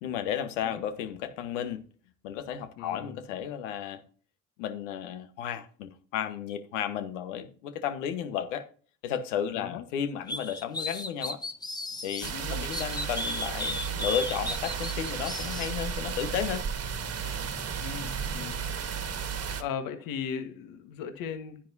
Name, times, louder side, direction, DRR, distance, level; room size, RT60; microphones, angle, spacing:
voice 1, 0.0-1.8 2.2-4.0 4.6-8.6 9.0-11.4 12.0-16.6, left 9 dB, 80° left, 1.3 m, -33 dB
voice 2, 2.8-3.1 9.5-9.8 12.3-12.7 17.8-18.6 19.6-21.7, left 7 dB, 65° left, 1.6 m, -37 dB
sound 1, 10.3-12.3 12.7-15.7, left 1 dB, 10° left, 1.2 m, -35 dB
sound 2, 12.2-19.6, right 6 dB, 40° right, 1.7 m, -34 dB
10.0 x 10.0 x 2.7 m
hypercardioid pair, 65°, 36 cm